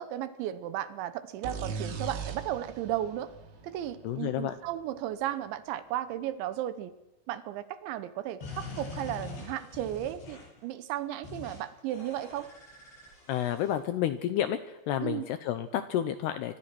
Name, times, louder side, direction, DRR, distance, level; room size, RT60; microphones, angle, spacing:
voice 1, 0.0-3.3 3.6-6.9 7.3-12.5 15.0-15.2, right 12 dB, 75° right, 13 dB, 3.0 m, -35 dB
sound 1, 1.4-5.1, right 5 dB, 90° right, 5.5 m, -40 dB
voice 2, 4.0-4.6 13.3-16.6, left 11 dB, 80° left, 10 dB, 2.4 m, -30 dB
sound 2, 8.4-10.6 11.2-11.6 11.9-13.7, left 3 dB, 55° left, 10.5 m, -43 dB
26.5 x 24.5 x 6.1 m, 1.0 s
omnidirectional pair, 6.0 m